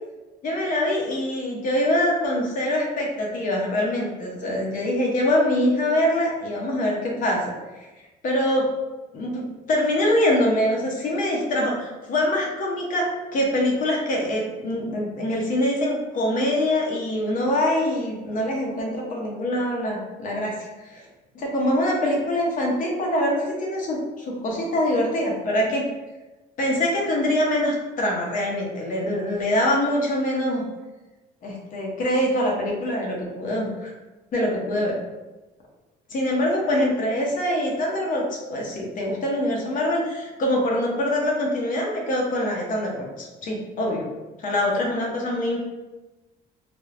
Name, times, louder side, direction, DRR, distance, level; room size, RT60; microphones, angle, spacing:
voice 1, 0.4-7.4 7.8-8.7 9.1-13.1 13.3-21.0 21.3-25.8 26.6-30.6 31.4-33.9 34.3-34.9 36.1-44.0 44.4-45.6, left 1 dB, 50° left, -1 dB, 0.8 m, -24 dB
3.3 x 2.2 x 2.5 m, 1.1 s
cardioid pair, 110°, 17 cm